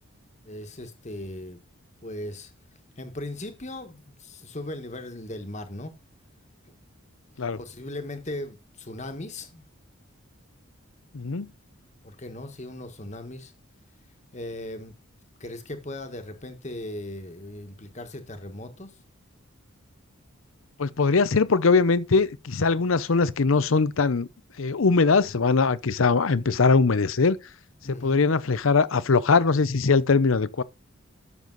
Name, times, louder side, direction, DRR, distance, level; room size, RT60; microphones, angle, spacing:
voice 1, 0.4-1.6 2.0-2.5 3.0-6.0 6.7-6.8 7.5-9.6 12.0-13.5 14.3-14.9 15.4-19.0 27.8-28.2, left 1 dB, 35° left, 1.5 m, -38 dB
voice 2, 11.1-11.5 20.8-24.3 24.6-27.4 27.9-30.6, left 4 dB, 70° left, 0.7 m, -21 dB
12.0 x 6.9 x 4.0 m
head